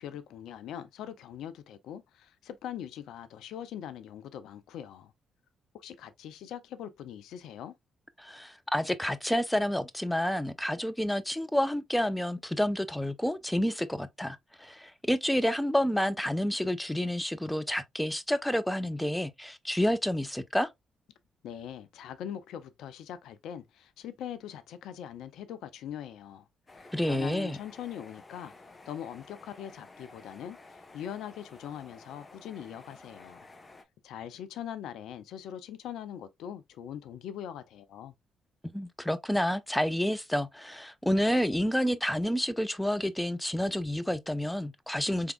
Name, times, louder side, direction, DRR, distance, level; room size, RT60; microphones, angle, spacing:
voice 1, 0.0-5.1 5.7-7.8 21.4-26.5 27.0-28.5 28.9-33.5 34.0-38.1, left 10 dB, 75° left, 0.4 m, -42 dB
voice 2, 8.2-20.7 26.9-27.6 38.6-45.3, equal, 5° left, 0.6 m, -29 dB
sound 1, 26.7-33.8, left 3 dB, 40° left, 1.1 m, -52 dB
4.7 x 3.5 x 2.3 m
hypercardioid pair, 45°, 0 cm